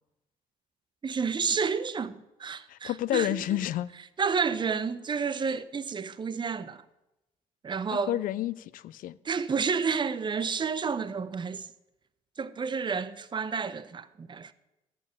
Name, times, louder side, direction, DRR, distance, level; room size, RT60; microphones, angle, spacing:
voice 1, 1.0-3.4 4.2-6.8 7.6-8.2 9.2-11.7 12.4-14.5, right 5 dB, 30° right, 0.7 m, -30 dB
voice 2, 2.7-3.9 7.9-9.2, left 13 dB, 60° left, 0.5 m, -30 dB
11.5 x 5.4 x 8.7 m
hypercardioid pair, 60°, 16 cm